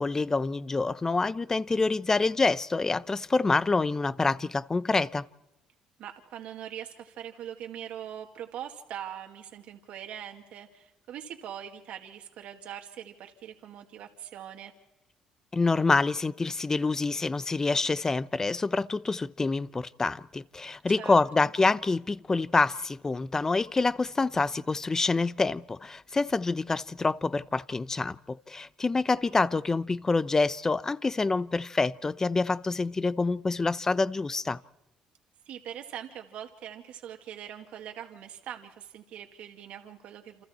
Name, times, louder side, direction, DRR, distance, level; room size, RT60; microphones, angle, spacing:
voice 1, 0.0-5.3 15.5-34.6, left 3 dB, 25° left, 0.9 m, -27 dB
voice 2, 6.0-14.7 21.0-21.5 29.3-29.6 35.5-40.4, right 10 dB, 70° right, 2.1 m, -42 dB
28.5 x 28.0 x 4.4 m
cardioid pair, 90°, 2 cm